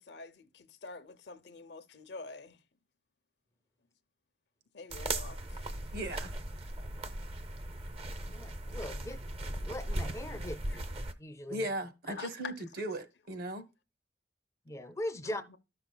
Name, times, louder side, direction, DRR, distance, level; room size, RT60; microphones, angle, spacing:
voice 1, 0.0-2.6 4.7-5.8 10.7-10.8 12.1-12.5 15.2-15.6, left 4 dB, 65° left, 0.6 m, -47 dB
sound 1, 4.9-11.1, right 1 dB, 30° right, 0.6 m, -38 dB
voice 2, 5.9-6.3 11.5-12.5 12.8-13.7, right 1 dB, 55° right, 0.9 m, -37 dB
voice 3, 8.2-10.8 11.2-11.7 12.1-12.2 14.7-15.4, left 1 dB, 15° left, 0.4 m, -41 dB
13.5 x 5.8 x 2.2 m
head